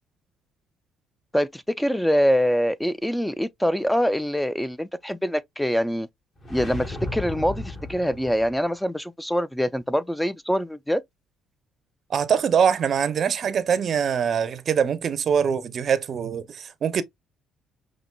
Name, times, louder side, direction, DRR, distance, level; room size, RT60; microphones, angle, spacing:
voice 1, 1.3-6.1 6.5-11.0, equal, 5° left, 0.4 m, -24 dB
sound 1, 6.4-8.6, left 1 dB, 35° left, 1.6 m, -34 dB
voice 2, 12.1-17.0, right 7 dB, 55° right, 0.6 m, -23 dB
5.7 x 2.6 x 2.2 m
supercardioid pair, 75°, 0 cm